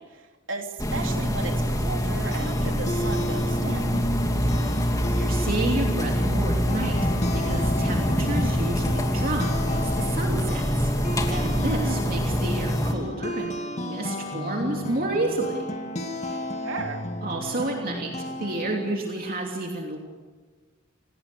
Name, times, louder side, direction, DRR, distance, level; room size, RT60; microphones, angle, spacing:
voice 1, 0.0-4.1 11.6-12.4 16.6-17.0, right 3 dB, 85° right, 3 dB, 3.3 m, -35 dB
sound 1, 0.8-12.9, equal, 20° left, 2.8 m, -25 dB
sound 2, 2.0-19.0, left 1 dB, 35° left, 2.2 m, -33 dB
voice 2, 5.1-7.0 7.3-10.9 11.3-13.5 13.8-15.7 16.1-16.4 17.2-20.0, right 2 dB, 50° right, 0 dB, 3.0 m, -30 dB
28.0 x 18.5 x 6.9 m, 1.4 s
head